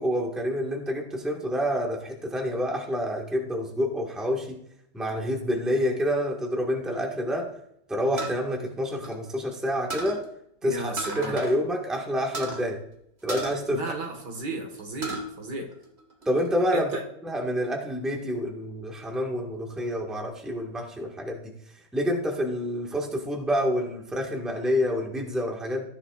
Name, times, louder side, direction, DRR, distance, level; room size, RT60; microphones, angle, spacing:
voice 1, 0.0-4.6 4.9-7.5 7.9-10.2 10.6-12.8 13.2-13.8 16.2-16.9 17.2-21.5 21.9-25.8, equal, ahead, 0 dB, 1.4 m, -28 dB
sound 1, 8.2-9.5 9.9-10.2 11.0-11.6 11.9-12.0 12.3-12.6 13.3-14.4 14.8-15.3 15.7-16.5, right 2 dB, 35° right, 1.9 m, -35 dB
voice 2, 10.6-11.4 13.7-15.7 16.7-17.0, right 3 dB, 70° right, 3 dB, 2.3 m, -34 dB
15.0 x 9.9 x 2.5 m, 0.74 s
omnidirectional pair, 1.9 m